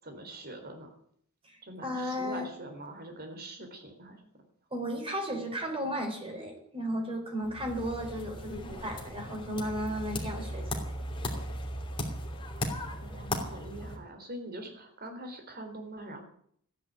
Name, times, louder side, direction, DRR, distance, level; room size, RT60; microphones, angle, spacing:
voice 1, 0.0-0.9 1.6-4.4 13.0-16.2, right 1 dB, 45° right, 5 dB, 3.9 m, -43 dB
voice 2, 1.4-2.5 4.7-10.8, equal, 25° right, 2 dB, 4.1 m, -34 dB
sound 1, 7.4-14.0, equal, 25° left, 2.9 m, -37 dB
14.0 x 10.0 x 9.3 m, 0.66 s
head